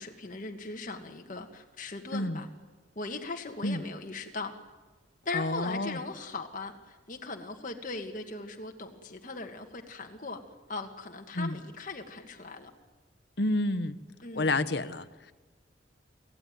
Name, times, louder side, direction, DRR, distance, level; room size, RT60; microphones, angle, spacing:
voice 1, 0.0-2.5 3.0-4.5 5.2-10.4 10.7-12.7 14.2-14.6, left 3 dB, 45° left, 3 dB, 1.7 m, -39 dB
voice 2, 2.1-2.4 3.6-3.8 5.3-6.0 11.3-11.6 13.4-13.9 14.3-15.3, left 2 dB, 60° left, 13 dB, 1.1 m, -29 dB
29.0 x 17.0 x 9.4 m, 1.3 s
head